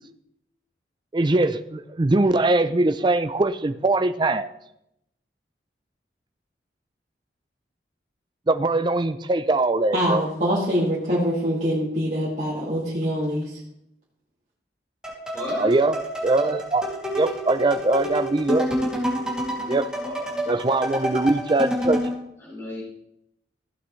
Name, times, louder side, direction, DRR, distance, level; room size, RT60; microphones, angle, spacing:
voice 1, 1.1-4.5 8.5-10.3 15.5-16.9 17.1-18.7 19.7-19.9 20.5-22.0, right 2 dB, 25° right, 11 dB, 0.5 m, -22 dB
voice 2, 9.9-13.6, equal, 45° right, -7 dB, 2.2 m, -24 dB
sound 1, 15.0-22.2, equal, 5° right, 2.6 m, -28 dB
voice 3, 15.3-15.7 20.0-20.3 21.0-21.2 22.4-22.8, left 1 dB, 15° left, -6 dB, 4.2 m, -34 dB
15.5 x 8.6 x 3.2 m, 0.81 s
head